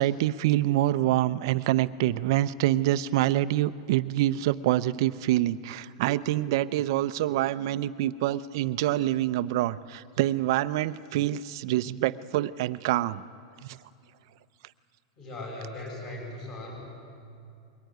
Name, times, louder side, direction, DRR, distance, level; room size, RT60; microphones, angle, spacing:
voice 1, 0.0-13.2 13.6-13.8, right 14 dB, 50° right, 15 dB, 0.6 m, -26 dB
voice 2, 15.2-16.8, left 2 dB, 30° left, 0 dB, 7.5 m, -38 dB
22.0 x 19.0 x 9.3 m, 2.4 s
supercardioid pair, 170°, 3 cm